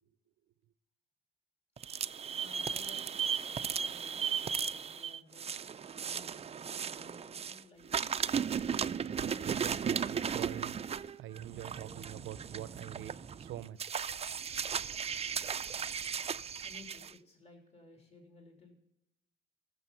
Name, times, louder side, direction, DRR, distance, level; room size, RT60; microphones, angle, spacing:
sound 1, 1.8-7.6 7.9-17.1, right 7 dB, 30° right, 0.4 m, -36 dB
voice 1, 2.4-3.1 3.5-5.5 6.0-8.4 16.6-18.8, left 3 dB, 30° left, 3.0 m, -58 dB
voice 2, 9.0-10.7 11.2-13.9, right 12 dB, 85° right, 0.7 m, -45 dB
14.5 x 6.9 x 6.9 m
cardioid pair, 90°, 20 cm